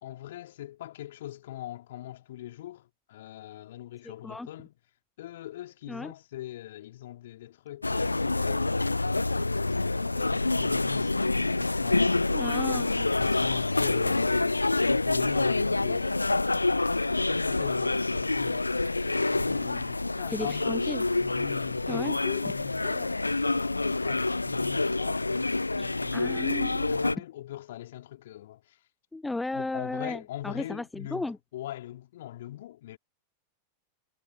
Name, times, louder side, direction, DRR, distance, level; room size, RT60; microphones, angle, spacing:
voice 1, 0.0-4.7 5.2-12.3 13.2-16.5 17.2-20.8 21.2-26.4 26.9-28.8 29.5-33.0, left 13 dB, 55° left, 3.4 m, -42 dB
sound 1, 7.8-27.2, left 2 dB, 80° left, 0.5 m, -27 dB
voice 2, 12.3-13.1 20.3-21.0 21.9-22.2 25.8-26.9 29.1-31.4, left 2 dB, 5° left, 0.3 m, -35 dB
figure-of-eight pair, 90°, 0 cm